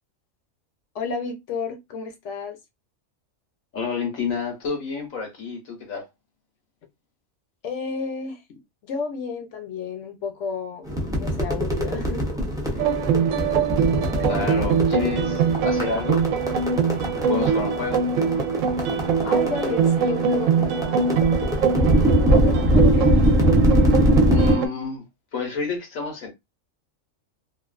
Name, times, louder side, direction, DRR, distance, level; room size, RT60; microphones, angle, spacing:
voice 1, 0.9-2.6 7.6-8.4 8.8-10.9 11.2-12.2 19.2-21.3 22.3-23.3, left 4 dB, 65° left, 1.0 m, -32 dB
voice 2, 3.7-6.1 14.2-16.2 17.1-18.0 24.3-25.0 25.3-26.3, left 4 dB, 85° left, 1.5 m, -29 dB
sound 1, 10.8-24.5, equal, 5° right, 0.5 m, -22 dB
sound 2, 12.8-24.7, right 6 dB, 75° right, 0.9 m, -23 dB
3.1 x 2.3 x 2.4 m
omnidirectional pair, 1.4 m